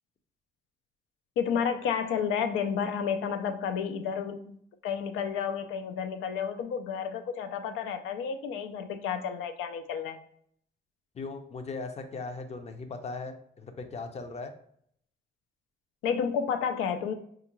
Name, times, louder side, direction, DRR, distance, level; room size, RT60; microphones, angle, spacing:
voice 1, 1.4-4.6 4.8-10.2 16.0-17.1, left 7 dB, 90° left, 8 dB, 0.4 m, -31 dB
voice 2, 11.1-14.5, left 3 dB, 35° left, 7 dB, 0.5 m, -38 dB
3.6 x 2.4 x 2.9 m, 0.66 s
cardioid pair, 90°, 20 cm